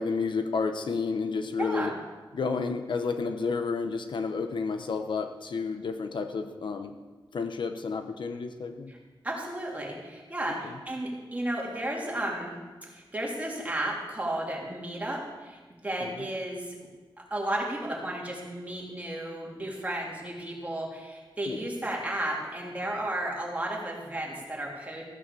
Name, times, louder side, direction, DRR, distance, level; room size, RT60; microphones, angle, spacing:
voice 1, 0.0-1.9 2.3-7.0 7.3-8.9 10.5-10.7 16.0-16.2 21.5-21.6, left 4 dB, 70° left, 7 dB, 1.0 m, -31 dB
voice 2, 1.6-1.9 8.9-9.0 9.2-12.5 12.8-16.7 17.3-25.0, right 1 dB, 15° right, -3 dB, 3.4 m, -33 dB
15.0 x 8.5 x 7.0 m, 1.3 s
wide cardioid pair, 120°, 8 cm